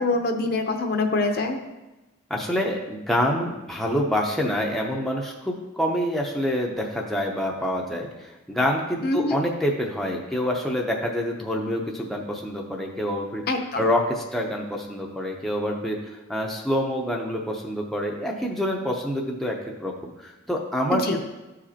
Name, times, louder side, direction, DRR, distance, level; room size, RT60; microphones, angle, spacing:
voice 1, 0.0-1.6 9.0-9.4 13.5-13.8 20.9-21.2, left 2 dB, 50° left, 4 dB, 0.7 m, -24 dB
voice 2, 2.3-13.4 13.8-21.3, equal, ahead, -1 dB, 0.6 m, -27 dB
12.5 x 5.0 x 2.8 m, 1.1 s
head